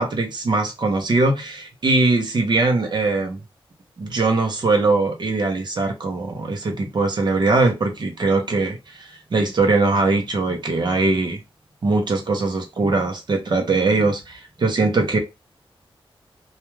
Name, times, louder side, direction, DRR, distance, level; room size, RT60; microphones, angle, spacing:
voice 1, 0.0-3.4 4.0-11.4 11.8-15.2, right 3 dB, 50° right, 0.7 m, -21 dB
2.3 x 2.2 x 3.1 m
wide cardioid pair, 125°, 10 cm